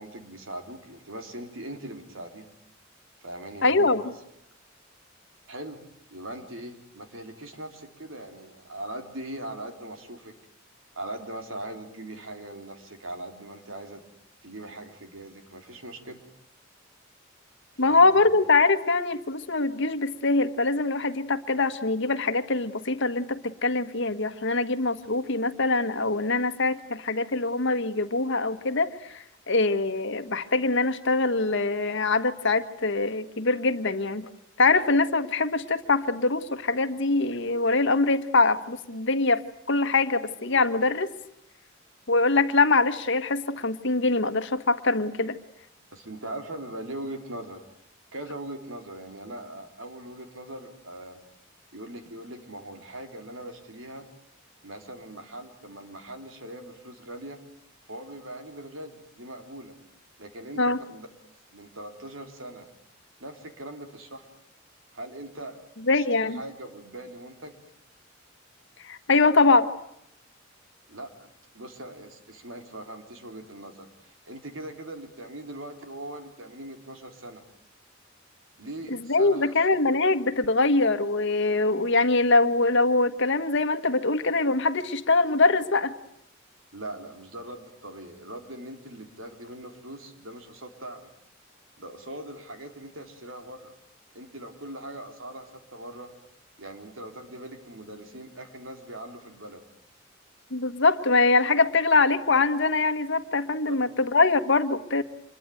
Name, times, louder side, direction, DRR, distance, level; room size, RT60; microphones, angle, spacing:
voice 1, 0.0-2.5 3.2-4.1 5.5-5.8 6.1-10.3 11.0-14.0 14.4-16.2 17.7-18.2 45.9-47.6 48.1-51.2 51.7-54.1 54.6-57.4 57.9-59.7 60.2-61.1 61.5-62.7 63.2-64.3 64.9-67.6 70.9-71.3 71.5-77.4 78.6-79.5 81.8-81.9 86.7-91.1 91.8-93.7 94.1-96.1 96.6-99.6 103.7-103.8, right 1 dB, 75° right, 6 dB, 3.8 m, -41 dB
voice 2, 3.6-4.1 17.8-34.3 34.6-39.4 39.7-41.1 42.1-45.4 60.6-60.8 65.9-66.4 68.8-69.7 78.9-85.9 100.5-105.0, left 3 dB, 65° left, 10 dB, 1.6 m, -23 dB
26.5 x 22.0 x 9.4 m, 0.75 s
head